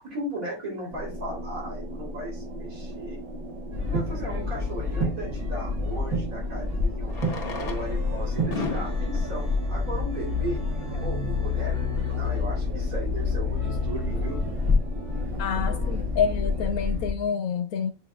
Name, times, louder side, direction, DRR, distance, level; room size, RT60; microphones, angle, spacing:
voice 1, 0.0-3.2 3.8-7.1 7.6-10.6 11.0-11.8 12.1-14.4 15.6-15.9, right 1 dB, 70° right, 3.9 m, -36 dB
sound 1, 0.9-16.7, equal, 35° right, 0.6 m, -38 dB
Fireworks, 3.5-3.6 5.9-6.0 7.0-10.8 11.5-11.6 11.8-11.9 12.1-12.2 12.7-13.0, left 4 dB, 55° left, 1.4 m, -37 dB
sound 2, 3.7-17.1, left 3 dB, 85° right, 5.3 m, -28 dB
voice 2, 15.4-17.9, left 6 dB, 80° left, 1.1 m, -27 dB
7.7 x 6.3 x 2.4 m
omnidirectional pair, 1.5 m